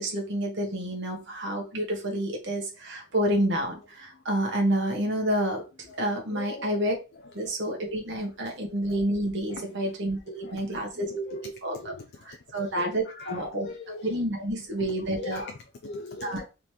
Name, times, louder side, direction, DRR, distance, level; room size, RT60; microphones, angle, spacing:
voice 1, 0.0-5.6 6.0-6.9 7.3-11.9 12.2-13.7 14.0-15.5 16.2-16.4, right 1 dB, 60° right, 1.3 m, -29 dB
voice 2, 5.9-6.7 7.4-7.8 9.5-9.9 10.3-10.9 11.3-12.4 12.6-14.2 14.8-14.9 15.2-16.4, left 3 dB, 55° left, 0.4 m, -42 dB
4.0 x 2.9 x 3.2 m
head